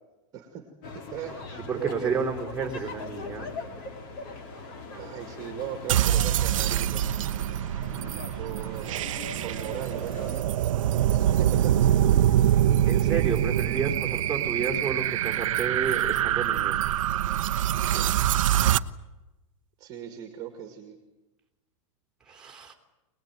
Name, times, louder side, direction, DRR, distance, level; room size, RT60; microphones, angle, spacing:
voice 1, 0.3-0.7 1.1-2.2 4.9-7.0 8.4-8.9 9.4-10.6 11.1-11.7 17.9-18.1 19.8-21.0, right 10 dB, 20° right, 4 dB, 2.2 m, -38 dB
sound 1, 0.8-10.4, left 3 dB, 40° left, 3.2 m, -41 dB
voice 2, 1.7-3.5 8.3-8.4 12.8-16.8 22.3-22.7, right 5 dB, 5° right, 2 dB, 3.2 m, -31 dB
sound 2, 5.9-18.8, right 11 dB, 75° right, 1.0 m, -24 dB
25.0 x 20.0 x 9.3 m, 1.0 s
supercardioid pair, 180°, 17 cm